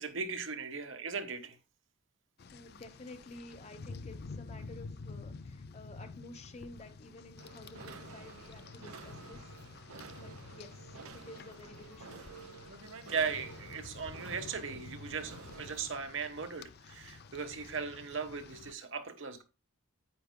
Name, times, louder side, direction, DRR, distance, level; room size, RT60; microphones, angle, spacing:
voice 1, 0.0-1.6 13.1-19.4, right 5 dB, 60° right, 1.2 m, -38 dB
Rain, 2.4-18.7, left 4 dB, 45° left, 0.4 m, -49 dB
voice 2, 2.5-9.4 10.2-12.2, left 2 dB, 30° left, 1.0 m, -52 dB
sound 1, 7.4-16.1, right 4 dB, 80° right, 1.0 m, -51 dB
9.9 x 9.2 x 2.2 m
head